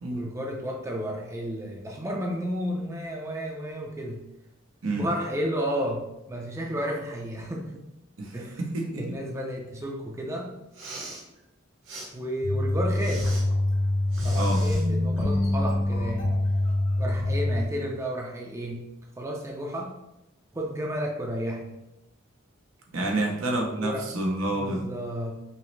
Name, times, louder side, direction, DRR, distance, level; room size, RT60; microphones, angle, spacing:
voice 1, 0.1-4.2 4.9-7.8 8.3-8.6 9.0-10.5 12.1-13.3 14.2-16.3 17.0-18.8 19.2-19.9 20.5-21.7 23.0-23.4 23.8-24.1 24.5-25.4, equal, 15° right, -1 dB, 0.4 m, -32 dB
voice 2, 8.2-9.2 14.4-14.7 22.9-24.9, right 2 dB, 85° right, 1 dB, 0.8 m, -29 dB
Respiratory sounds, 10.6-11.2 11.8-12.1 12.9-13.4 14.1-14.8, right 2 dB, 65° right, 1.2 m, -41 dB
sound 1, 12.4-17.6, left 1 dB, 70° left, 0.8 m, -25 dB
5.5 x 2.0 x 3.1 m, 0.88 s
head